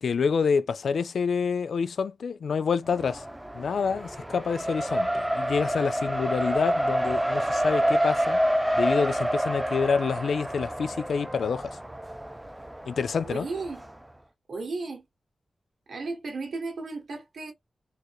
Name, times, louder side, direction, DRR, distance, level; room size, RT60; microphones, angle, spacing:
voice 1, 0.0-3.2 3.5-8.4 8.8-11.8 12.9-13.5, left 5 dB, 85° left, 0.3 m, -27 dB
Race car auto racing, 2.9-13.9, equal, 10° right, 0.3 m, -28 dB
voice 2, 13.2-13.8 14.5-15.0 15.9-17.5, right 3 dB, 75° right, 1.7 m, -34 dB
4.5 x 2.0 x 3.0 m
wide cardioid pair, 175°, 0 cm